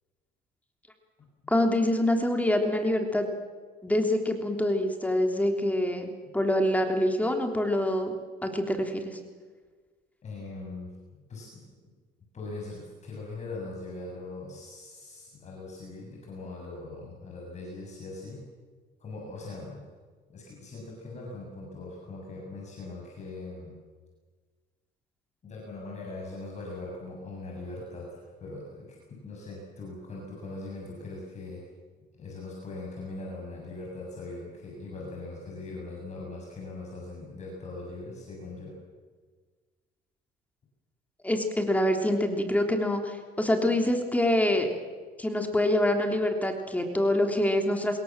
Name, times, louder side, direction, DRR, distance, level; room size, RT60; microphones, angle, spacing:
voice 1, 1.5-3.3 3.8-8.1 8.4-9.2 41.2-44.7 45.2-48.0, left 1 dB, 10° left, 4 dB, 3.3 m, -25 dB
voice 2, 10.2-10.9 11.3-11.7 12.3-18.4 19.0-19.8 20.3-23.7 25.4-31.6 32.1-38.7, left 2 dB, 40° left, -2 dB, 7.5 m, -41 dB
25.5 x 22.0 x 7.5 m, 1.5 s
cardioid pair, 110°, 17 cm